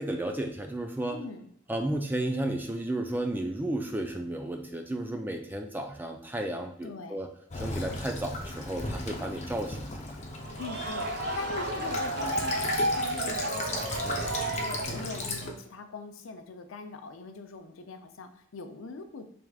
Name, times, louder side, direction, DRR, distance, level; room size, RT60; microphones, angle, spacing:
voice 1, 0.0-1.2 1.7-7.3 7.5-10.2 14.0-14.3, right 1 dB, 10° right, 4 dB, 0.3 m, -33 dB
voice 2, 1.1-1.5 6.8-7.2 10.6-19.3, left 3 dB, 80° left, 7 dB, 0.5 m, -42 dB
Child speech kid speaking / Bird vocalization bird call bird song / Stream, 7.5-15.5, left 2 dB, 35° left, 0.6 m, -36 dB
sound 1, 10.4-15.4, right 1 dB, 55° right, 0.7 m, -32 dB
4.7 x 3.4 x 2.3 m, 0.69 s
head